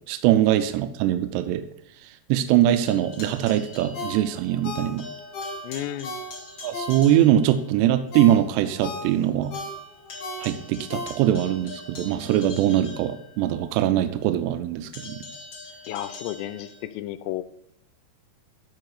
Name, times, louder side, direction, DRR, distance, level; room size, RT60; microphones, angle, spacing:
voice 1, 0.1-1.6 2.3-5.0 6.6-9.5 10.4-15.2, right 12 dB, 85° right, 10 dB, 2.7 m, -22 dB
sound 1, 2.6-4.7 5.0-7.6 8.1-8.2 8.6-8.7 8.9-13.7 14.9-16.8, left 3 dB, 40° left, 3.0 m, -43 dB
Ringtone, 3.9-7.4 7.8-11.6 12.0-12.1, left 2 dB, 65° left, 3.8 m, -36 dB
voice 2, 5.6-6.2 15.9-17.4, left 13 dB, 85° left, 13 dB, 2.7 m, -32 dB
13.0 x 4.3 x 4.8 m, 0.76 s
omnidirectional pair, 4.9 m